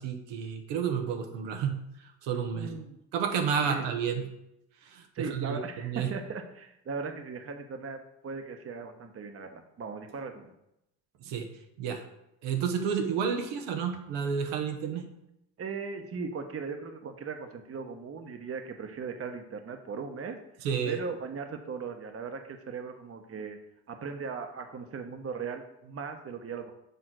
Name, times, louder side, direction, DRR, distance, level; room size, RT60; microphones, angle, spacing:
voice 1, 0.0-1.8 2.2-2.7 3.1-4.3 4.8-6.1 11.2-11.5 11.8-12.0 12.4-15.1 20.6-21.0, right 7 dB, 80° right, 5 dB, 1.1 m, -31 dB
voice 2, 2.5-3.0 3.6-3.8 5.1-10.5 15.6-20.4 20.9-23.6 23.9-26.7, right 5 dB, 35° right, 6 dB, 1.0 m, -38 dB
6.8 x 3.7 x 6.1 m, 0.83 s
supercardioid pair, 75°, 42 cm